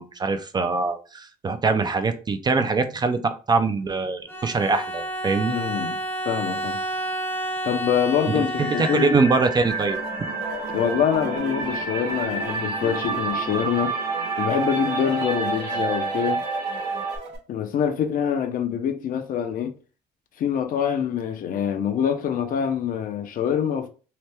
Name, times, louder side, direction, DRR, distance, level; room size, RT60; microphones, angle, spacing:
voice 1, 0.0-5.6 8.3-8.4 8.8-10.0, right 4 dB, 25° right, 0.3 m, -23 dB
Bowed string instrument, 4.3-9.5, right 1 dB, 15° left, 0.7 m, -30 dB
voice 2, 5.5-6.0 6.2-6.8 7.6-9.2 10.7-13.9 14.4-16.4 17.5-19.7 20.4-23.9, left 8 dB, 55° left, 0.6 m, -25 dB
sound 1, 8.6-17.2, right 3 dB, 70° right, 1.2 m, -29 dB
sound 2, 9.7-17.4, right 2 dB, 85° right, 1.0 m, -41 dB
2.8 x 2.1 x 3.3 m
cardioid pair, 110°, 17 cm